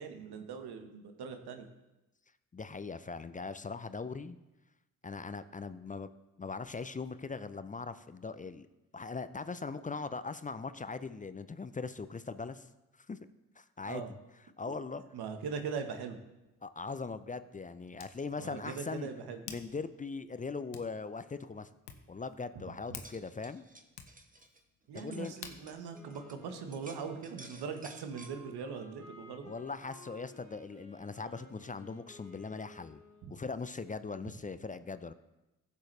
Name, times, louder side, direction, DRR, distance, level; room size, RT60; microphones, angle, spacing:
voice 1, 0.0-1.7 13.9-14.1 15.1-16.2 18.4-19.4 22.9-23.0 24.9-29.5, right 6 dB, 60° right, 7 dB, 1.4 m, -41 dB
voice 2, 2.5-4.4 5.0-6.1 6.4-8.7 8.9-12.7 13.1-13.2 13.6-14.0 14.6-15.0 16.6-19.1 19.5-21.7 22.1-23.7 24.9-25.3 29.4-33.0 33.3-35.1, left 4 dB, 20° left, 13 dB, 0.6 m, -40 dB
Hands, 16.4-27.1, left 8 dB, 65° left, 1.2 m, -54 dB
sound 1, 22.8-26.4 26.7-28.3, right 2 dB, 20° right, 1.4 m, -54 dB
Wind instrument woodwind instrument, 25.9-33.5, left 2 dB, 85° right, 2.3 m, -55 dB
15.5 x 7.2 x 3.3 m, 0.98 s
hypercardioid pair, 45°, 43 cm